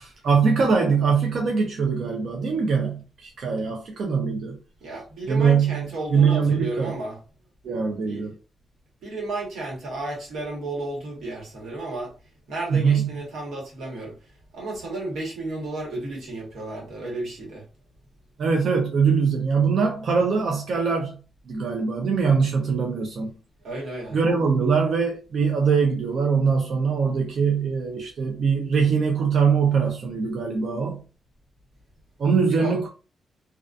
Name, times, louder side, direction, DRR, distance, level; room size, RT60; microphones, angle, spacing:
voice 1, 0.0-4.6 5.3-7.0 7.6-8.3 12.7-13.1 18.4-21.2 21.5-23.3 24.1-31.0 32.2-32.9, right 5 dB, 60° right, 0.4 m, -22 dB
voice 2, 4.8-7.2 8.1-8.3 9.0-12.1 12.5-14.2 14.5-17.6 23.6-24.2 32.4-32.8, right 2 dB, 85° right, 1.2 m, -33 dB
2.5 x 2.3 x 2.3 m
wide cardioid pair, 145°, 0 cm